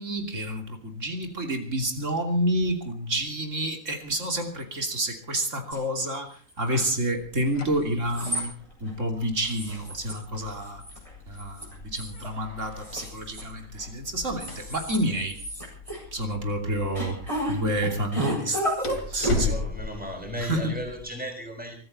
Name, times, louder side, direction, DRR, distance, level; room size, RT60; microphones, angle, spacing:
voice 1, 0.0-8.5 8.8-10.8 11.3-15.4 16.1-17.2 17.5-19.6 20.3-20.8, right 1 dB, 70° right, 4 dB, 3.3 m, -29 dB
sound 1, 5.7-5.8 6.5-7.1 8.0-8.4 8.9-9.0 9.4-10.1 10.4-11.1 11.4-12.3 12.8-13.9 14.3-15.0 15.3-16.0 17.0-17.6 17.8-19.4, equal, 25° right, 7.8 m, -31 dB
sound 2, 7.1-21.0, left 4 dB, 90° left, 3.3 m, -39 dB
voice 2, 18.1-18.7 19.1-21.7, equal, 5° right, 2 dB, 6.1 m, -36 dB
23.5 x 14.0 x 4.3 m, 0.43 s
omnidirectional pair, 1.4 m